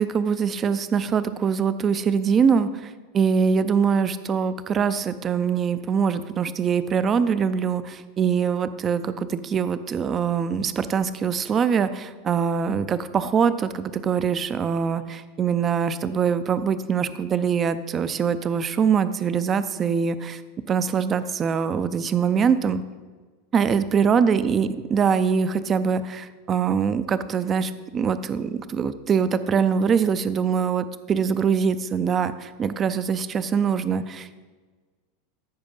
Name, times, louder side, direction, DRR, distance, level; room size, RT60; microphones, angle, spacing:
voice 1, 0.0-20.4 20.7-22.8 23.5-34.4, right 6 dB, 25° right, 13 dB, 0.4 m, -23 dB
14.0 x 4.9 x 5.4 m, 1.4 s
supercardioid pair, 150°, 0 cm